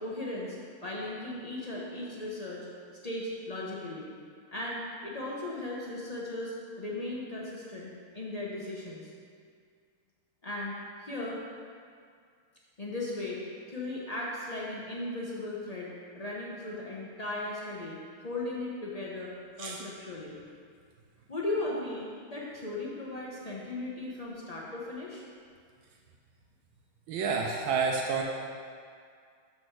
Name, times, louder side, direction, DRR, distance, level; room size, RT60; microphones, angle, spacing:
voice 1, 0.0-4.1 4.5-9.1 10.4-11.4 12.8-20.4 21.3-25.2, left 2 dB, 50° left, -5 dB, 0.4 m, -37 dB
voice 2, 27.1-28.2, right 5 dB, 85° right, 1 dB, 1.5 m, -29 dB
12.5 x 4.2 x 4.7 m, 2.2 s
omnidirectional pair, 2.2 m